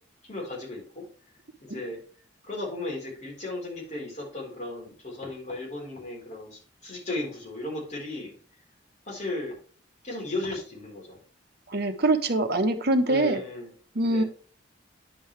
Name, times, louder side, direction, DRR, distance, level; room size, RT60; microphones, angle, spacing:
voice 1, 0.2-1.0 1.7-2.0 2.4-8.3 9.1-9.6 10.0-11.2 13.1-13.7 14.1-14.3, left 2 dB, 40° left, -3 dB, 4.2 m, -35 dB
voice 2, 11.7-13.4 13.9-14.2, right 2 dB, 60° right, 6 dB, 1.1 m, -23 dB
9.7 x 5.5 x 3.3 m, 0.42 s
head